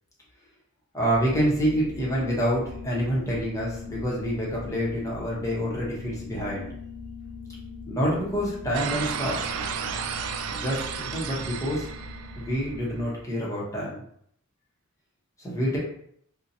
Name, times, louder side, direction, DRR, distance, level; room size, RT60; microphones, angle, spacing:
voice 1, 0.9-6.7 7.9-9.4 10.5-11.9 12.4-14.0 15.4-15.8, equal, 15° left, -5 dB, 0.8 m, -27 dB
sound 1, 1.1-13.1, left 3 dB, 55° left, 0.4 m, -41 dB
sound 2, 8.7-12.9, right 7 dB, 90° right, 0.3 m, -33 dB
2.7 x 2.1 x 2.7 m, 0.68 s
head